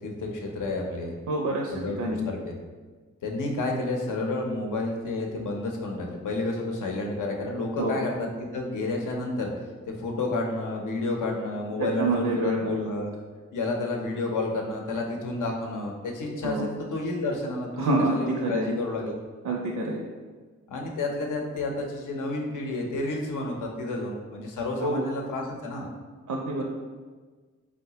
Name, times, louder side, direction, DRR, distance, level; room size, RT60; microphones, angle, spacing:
voice 1, 0.0-1.2 1.7-2.6 3.2-9.5 9.9-13.1 13.5-19.2 20.7-25.9, left 2 dB, 80° left, 1 dB, 0.6 m, -30 dB
voice 2, 1.3-1.7 2.0-2.2 7.8-8.0 11.8-12.7 16.4-16.7 17.8-18.7 19.4-20.0 24.8-25.1 26.3-26.6, right 2 dB, 70° right, -1 dB, 0.5 m, -27 dB
3.9 x 2.1 x 2.8 m, 1.4 s
cardioid pair, 55°, 31 cm